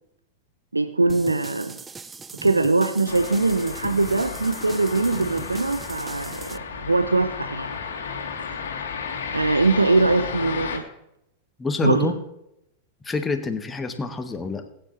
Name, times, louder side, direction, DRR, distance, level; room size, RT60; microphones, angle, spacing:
voice 1, 0.7-1.8 2.4-7.7 9.3-10.8 11.8-12.1, right 3 dB, 80° right, 11 dB, 0.7 m, -22 dB
sound 1, 1.1-6.6, right 5 dB, 15° right, 0.6 m, -40 dB
sound 2, 3.1-10.8, left 6 dB, 65° left, 2.3 m, -33 dB
voice 2, 11.6-12.1 13.0-14.7, left 4 dB, 15° left, 6 dB, 1.6 m, -27 dB
20.0 x 10.0 x 3.3 m, 0.80 s
figure-of-eight pair, 90°, 0 cm